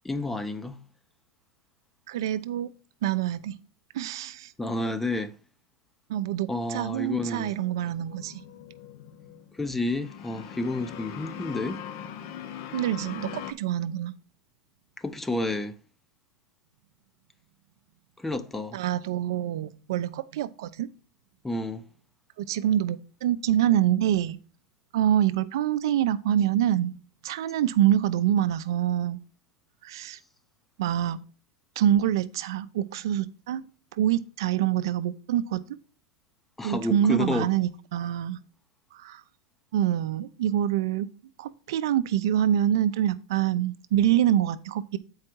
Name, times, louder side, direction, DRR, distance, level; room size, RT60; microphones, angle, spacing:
voice 1, 0.0-0.8 4.6-5.4 6.5-7.5 9.5-11.8 15.0-15.8 18.2-18.8 21.4-21.9 36.6-37.5, left 2 dB, 10° left, 0.6 m, -30 dB
voice 2, 2.1-2.7 3.0-3.6 3.9-4.5 6.1-8.4 12.7-14.1 18.7-20.9 22.4-24.4 24.9-26.9 27.2-29.2 29.8-30.2 30.8-31.2 31.8-33.6 34.0-35.6 36.6-38.4 38.9-39.2 39.7-41.1 41.4-45.0, right 11 dB, 70° right, 0.6 m, -25 dB
sound 1, 7.2-13.5, left 9 dB, 55° left, 0.7 m, -41 dB
7.6 x 4.8 x 4.5 m
hypercardioid pair, 125°, 2 cm